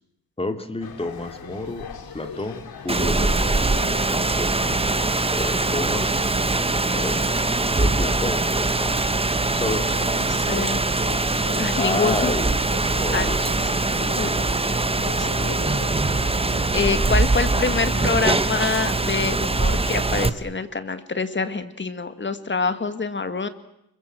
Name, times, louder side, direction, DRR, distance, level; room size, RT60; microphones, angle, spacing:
voice 1, 0.4-1.9 2.1-3.4 5.3-7.3 7.8-9.0 9.5-9.9 11.8-15.4, left 2 dB, 15° left, 7 dB, 2.8 m, -31 dB
sound 1, 0.8-19.1, left 6 dB, 75° left, 3.2 m, -39 dB
Rain, 2.9-20.3, right 2 dB, 15° right, 1.1 m, -22 dB
voice 2, 10.3-10.8 11.6-12.3 13.1-13.3 14.2-14.3 15.2-15.6 16.7-23.5, left 4 dB, 30° left, 10 dB, 1.9 m, -26 dB
29.5 x 22.5 x 7.8 m, 0.80 s
wide cardioid pair, 110°, 37 cm